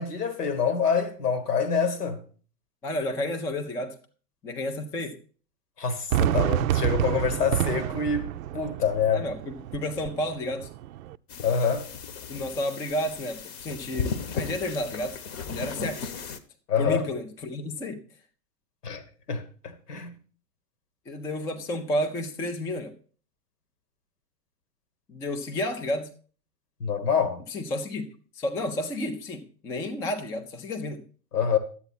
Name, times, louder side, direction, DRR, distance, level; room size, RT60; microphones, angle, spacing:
voice 1, 0.0-2.2 5.8-9.3 11.4-11.9 16.7-17.1 18.8-19.0 19.3-20.1 26.8-27.4 31.3-31.6, left 6 dB, 70° left, 1.7 m, -26 dB
voice 2, 2.8-4.0 4.4-5.2 6.3-6.4 7.3-7.4 9.1-10.7 12.3-15.2 15.5-16.1 16.8-18.0 21.1-22.9 25.1-26.1 27.5-28.0 28.4-31.0, left 1 dB, 5° left, 0.4 m, -31 dB
Fireworks, 6.1-11.2, right 12 dB, 60° right, 0.5 m, -28 dB
sound 1, 11.3-16.4, left 5 dB, 40° left, 1.1 m, -35 dB
11.0 x 8.2 x 4.1 m
figure-of-eight pair, 95°, 48 cm